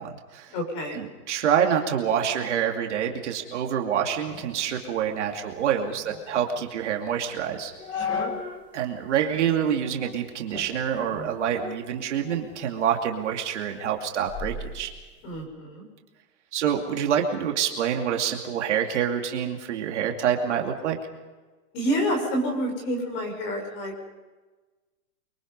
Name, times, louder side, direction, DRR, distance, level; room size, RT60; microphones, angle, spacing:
voice 1, 0.0-0.5 0.9-7.7 8.7-14.9 16.5-21.0, right 8 dB, 45° right, 2 dB, 2.6 m, -26 dB
voice 2, 0.5-1.0 7.9-8.4 15.2-15.8 21.7-24.0, equal, 25° left, 3 dB, 5.8 m, -28 dB
sound 1, 4.3-8.7 9.1-9.2 9.8-10.2 10.5-12.6 13.0-15.4, left 4 dB, 10° left, 1.4 m, -37 dB
28.5 x 24.0 x 5.5 m, 1.3 s
hypercardioid pair, 175°, 48 cm